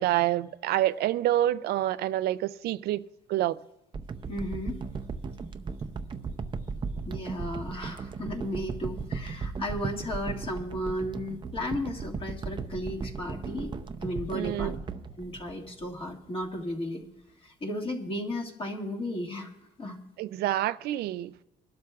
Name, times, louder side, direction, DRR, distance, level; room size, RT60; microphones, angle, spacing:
voice 1, 0.0-3.0 3.3-3.6 14.3-14.7 20.2-21.4, right 14 dB, 70° right, 0.4 m, -27 dB
sound 1, 3.9-16.2 16.7-16.8, right 4 dB, 30° right, 0.6 m, -37 dB
voice 2, 4.3-4.8 7.0-13.7 14.0-14.8 15.2-17.0 17.4-19.5 19.8-20.0, left 1 dB, 30° left, 2.0 m, -34 dB
25.0 x 12.0 x 2.4 m
cardioid pair, 110°, 17 cm